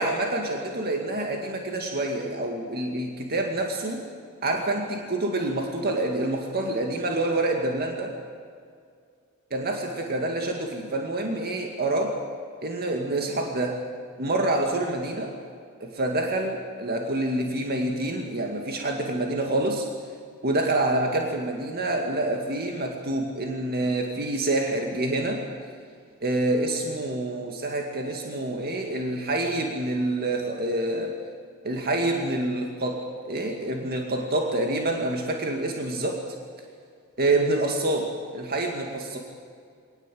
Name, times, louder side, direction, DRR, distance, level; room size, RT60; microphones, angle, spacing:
voice 1, 0.0-4.0 4.4-8.2 9.5-12.2 12.6-13.8 14.2-15.3 15.8-19.9 20.4-25.4 26.2-31.1 31.6-33.0 33.3-36.2 37.2-39.2, right 2 dB, 45° right, 2 dB, 2.1 m, -27 dB
24.0 x 18.5 x 7.7 m, 2.2 s
head